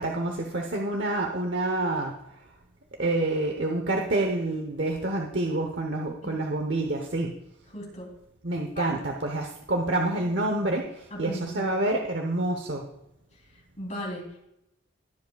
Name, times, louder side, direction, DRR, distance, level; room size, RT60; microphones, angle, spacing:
voice 1, 0.0-2.2 3.0-7.3 8.4-12.9, right 2 dB, 55° right, 2 dB, 1.0 m, -28 dB
voice 2, 7.7-8.1 8.8-8.9 11.1-11.7 13.8-14.4, left 1 dB, 35° left, -1 dB, 3.3 m, -36 dB
20.0 x 7.6 x 2.4 m, 0.84 s
head